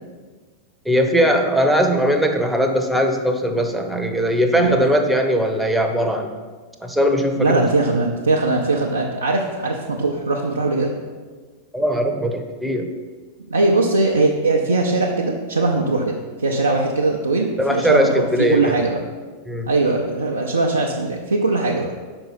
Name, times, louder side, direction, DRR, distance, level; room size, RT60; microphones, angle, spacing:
voice 1, 0.8-6.3 6.8-7.6 11.7-12.9 17.6-18.7 19.5-19.7, equal, 5° right, 4 dB, 0.7 m, -19 dB
voice 2, 7.4-11.0 13.5-19.0 19.7-21.9, right 2 dB, 75° right, -1 dB, 0.5 m, -20 dB
5.3 x 4.4 x 5.8 m, 1.4 s
figure-of-eight pair, 90°, 0 cm